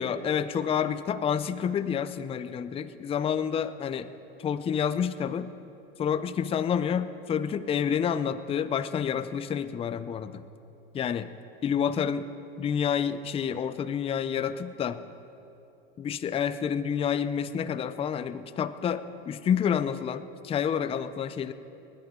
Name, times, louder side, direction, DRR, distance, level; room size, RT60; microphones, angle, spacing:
voice 1, 0.0-4.1 4.4-5.5 6.0-10.4 10.9-11.3 11.6-12.3 12.6-15.0 16.0-21.5, left 8 dB, 20° left, 12 dB, 0.6 m, -29 dB
28.0 x 11.0 x 3.8 m, 2.8 s
hypercardioid pair, 110°, 30 cm